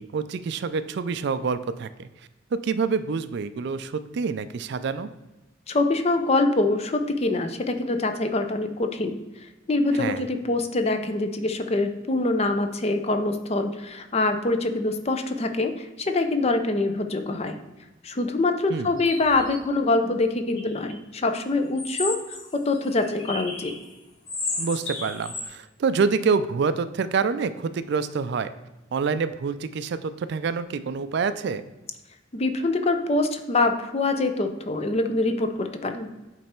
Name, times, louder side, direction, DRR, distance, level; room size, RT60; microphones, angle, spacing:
voice 1, 0.0-2.1 2.5-5.1 9.9-10.2 18.7-18.9 24.6-28.5 28.9-31.6, right 5 dB, 60° right, 12 dB, 0.4 m, -27 dB
voice 2, 5.7-9.2 9.7-17.7 18.0-23.7 32.3-36.2, left 2 dB, 30° left, 7 dB, 0.5 m, -24 dB
sound 1, 18.9-19.6 20.6-20.9 21.8-23.9 24.3-25.5, left 2 dB, 75° left, 1.8 m, -33 dB
8.4 x 3.4 x 4.3 m, 1.1 s
head